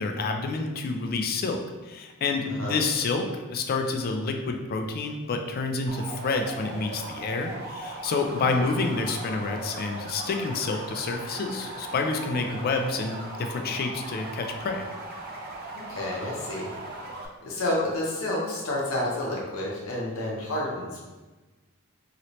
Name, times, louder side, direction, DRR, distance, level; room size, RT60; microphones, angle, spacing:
voice 1, 0.0-14.9, left 3 dB, 45° left, 4 dB, 0.4 m, -28 dB
voice 2, 2.4-2.8 8.4-8.6 15.9-16.7 17.4-21.0, left 1 dB, 70° left, -4 dB, 0.8 m, -30 dB
sound 1, 5.9-17.3, right 2 dB, 45° right, 0.4 m, -39 dB
3.0 x 2.9 x 2.7 m, 1.2 s
head